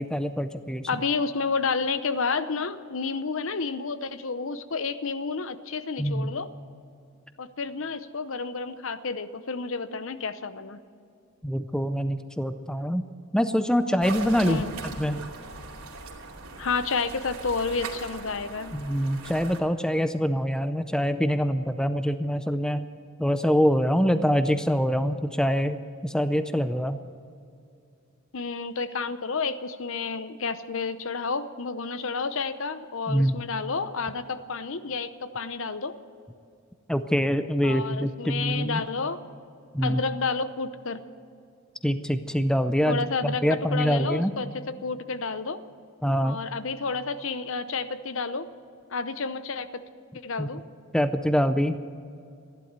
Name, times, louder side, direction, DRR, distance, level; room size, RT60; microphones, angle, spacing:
voice 1, 0.0-0.9 6.0-6.3 11.4-13.0 13.3-15.2 18.7-22.9 23.2-27.0 33.1-33.4 36.9-38.8 39.7-40.0 41.8-44.3 46.0-46.4 50.4-50.5 50.9-51.8, equal, 5° left, 11 dB, 0.4 m, -25 dB
voice 2, 0.9-6.5 7.4-10.8 14.4-14.7 16.6-18.8 28.3-36.0 37.6-39.2 39.8-41.0 42.9-45.6 46.2-48.5 48.9-49.8 50.2-50.6, left 4 dB, 60° left, 13 dB, 0.7 m, -30 dB
sound 1, 14.0-19.6, right 3 dB, 80° right, 2.7 m, -39 dB
15.5 x 11.5 x 8.1 m, 2.5 s
head